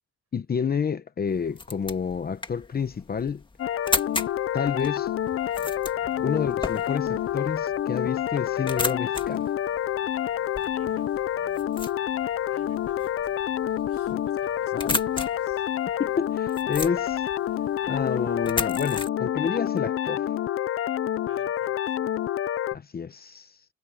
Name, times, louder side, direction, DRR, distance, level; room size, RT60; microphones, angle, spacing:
voice 1, 0.3-3.4 4.5-5.1 6.2-9.5 14.1-14.2 14.7-15.0 16.0-17.2 17.9-20.3 22.7-23.5, left 6 dB, 30° left, 0.9 m, -29 dB
sound 1, 1.3-19.1, left 3 dB, 15° left, 1.7 m, -36 dB
sound 2, 3.6-22.8, left 11 dB, 50° left, 0.5 m, -28 dB
voice 2, 10.7-11.8 12.5-13.3 13.6-15.7 21.3-22.0, right 8 dB, 50° right, 8.0 m, -54 dB
wide cardioid pair, 165°, 29 cm